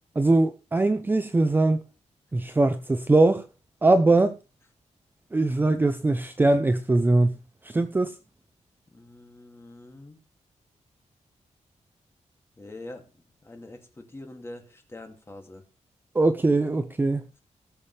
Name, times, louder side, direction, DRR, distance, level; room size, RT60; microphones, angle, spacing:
voice 1, 0.2-1.8 2.3-3.4 3.8-4.3 5.3-7.3 7.6-8.1 16.1-17.2, right 2 dB, 15° right, 0.6 m, -21 dB
voice 2, 8.9-10.2 12.6-13.0 13.4-15.6, left 2 dB, 20° left, 2.4 m, -44 dB
18.5 x 7.4 x 3.3 m
wide cardioid pair, 170°, 12 cm